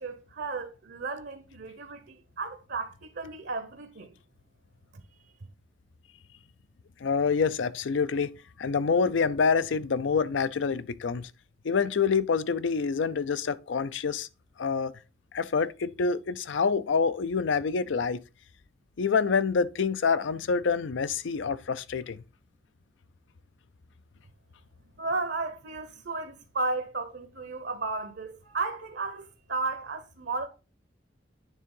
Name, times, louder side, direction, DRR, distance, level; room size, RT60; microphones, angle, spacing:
voice 1, 0.0-4.1 25.0-30.5, right 3 dB, 65° right, 0.8 m, -34 dB
voice 2, 7.0-11.3 11.6-14.3 14.6-14.9 15.3-18.2 19.0-22.2, left 5 dB, 75° left, 0.5 m, -27 dB
9.2 x 3.6 x 5.4 m
head